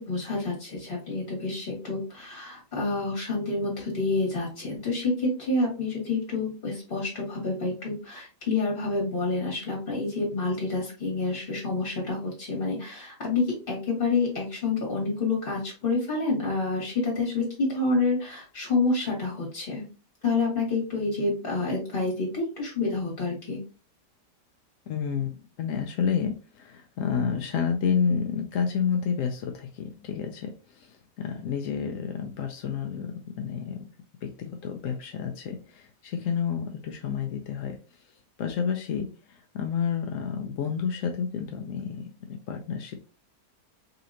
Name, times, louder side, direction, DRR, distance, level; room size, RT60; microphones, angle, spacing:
voice 1, 0.0-19.8 20.2-23.6, left 3 dB, 30° left, -2 dB, 1.7 m, -28 dB
voice 2, 24.9-33.8 34.2-37.8 38.4-43.0, left 7 dB, 75° left, 3 dB, 0.7 m, -30 dB
4.1 x 2.8 x 2.6 m, 0.34 s
omnidirectional pair, 1.9 m